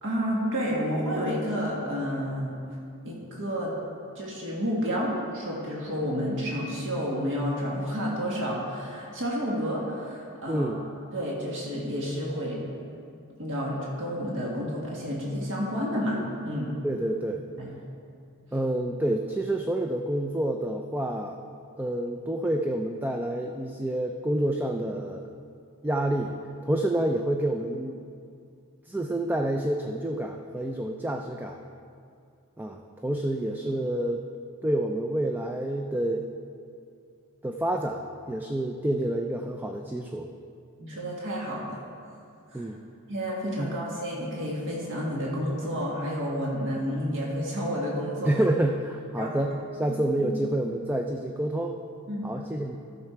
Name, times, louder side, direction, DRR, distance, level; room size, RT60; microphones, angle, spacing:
voice 1, 0.0-2.5 3.0-3.7 4.1-10.7 11.1-12.6 13.4-16.2 16.4-16.7 17.6-17.7 40.8-41.7 42.5-42.7 43.1-48.3 49.2-49.4 49.9-50.3 52.1-52.3, equal, 60° right, -4 dB, 1.8 m, -30 dB
voice 2, 10.5-10.8 16.8-17.4 18.5-21.4 21.8-25.3 25.8-26.4 26.6-28.0 28.9-31.6 32.6-34.2 34.6-36.3 37.4-40.3 42.5-42.9 43.6-43.7 48.2-51.8 52.2-52.8, right 1 dB, 10° right, 3 dB, 0.4 m, -28 dB
14.0 x 6.7 x 4.5 m, 2.4 s
head